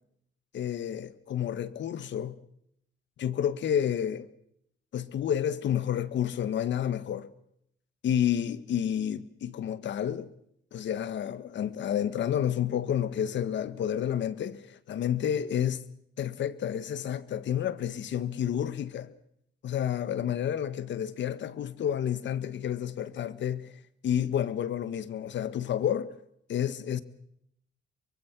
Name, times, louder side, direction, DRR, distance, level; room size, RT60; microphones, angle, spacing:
voice 1, 0.5-2.4 3.2-4.3 4.9-7.3 8.0-10.3 10.7-15.8 16.2-19.1 19.6-23.7 24.0-26.1 26.5-27.0, left 9 dB, 65° left, 1.6 m, -30 dB
24.5 x 23.0 x 6.2 m
cardioid pair, 90°, 20 cm